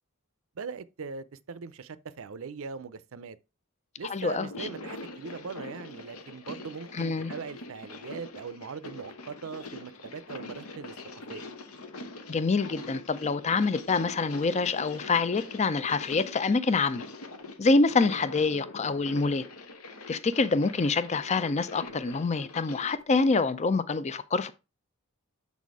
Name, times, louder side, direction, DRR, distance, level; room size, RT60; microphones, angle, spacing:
voice 1, 0.6-3.4 4.0-10.9 11.3-11.5, right 5 dB, 65° right, 0.5 m, -40 dB
voice 2, 4.1-4.7 6.9-7.3 12.3-17.0 17.6-19.4 20.1-24.5, left 3 dB, 30° left, 0.5 m, -26 dB
sound 1, 4.4-23.0, left 2 dB, 80° left, 1.0 m, -43 dB
7.2 x 4.2 x 4.7 m
head